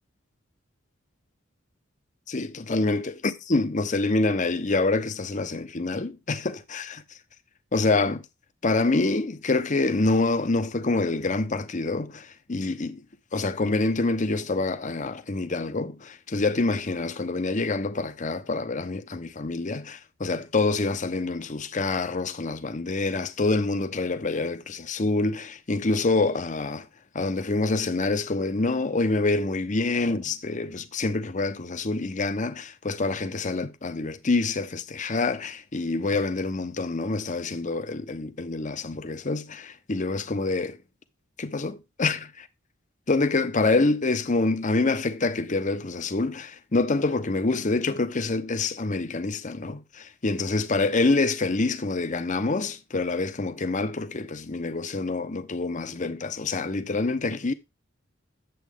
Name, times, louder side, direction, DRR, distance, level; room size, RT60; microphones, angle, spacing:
voice 1, 2.3-7.0 7.7-8.2 8.6-13.0 13.3-26.9 27.1-40.8 41.4-42.5 43.1-57.5, left 3 dB, 40° left, 0.9 m, -26 dB
9.4 x 7.5 x 3.6 m
head